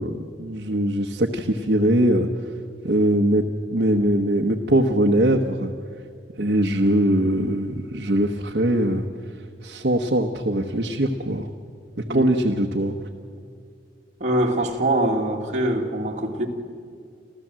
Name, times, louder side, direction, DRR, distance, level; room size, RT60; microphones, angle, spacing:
voice 1, 0.0-2.5 2.8-5.7 6.4-9.0 9.6-11.5 12.1-13.0, right 1 dB, 60° right, 1 dB, 1.1 m, -21 dB
voice 2, 12.1-12.4 14.2-16.5, right 1 dB, 45° right, -1 dB, 2.3 m, -23 dB
27.5 x 14.5 x 7.6 m, 2.2 s
head